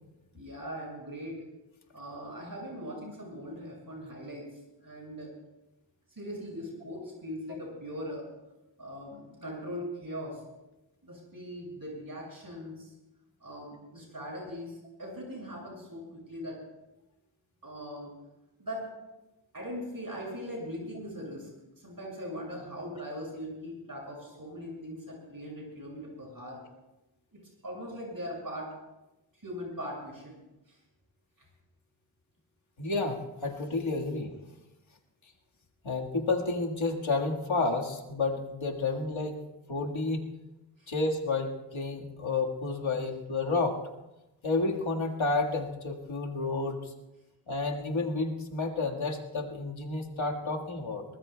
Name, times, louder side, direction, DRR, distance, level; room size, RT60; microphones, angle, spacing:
voice 1, 0.3-1.4 1.9-4.4 4.8-5.3 6.2-8.2 8.8-10.4 11.0-12.9 13.4-16.6 17.6-18.1 18.6-18.9 19.5-21.5 21.8-26.6 27.6-28.7 29.4-30.4, equal, 45° right, -2 dB, 6.3 m, -40 dB
voice 2, 32.8-34.3 35.8-39.4 39.7-40.2 40.9-43.8 44.4-46.9 47.5-51.1, left 3 dB, 85° left, 1 dB, 1.8 m, -30 dB
23.5 x 19.0 x 2.2 m, 1.0 s
wide cardioid pair, 50°, 46 cm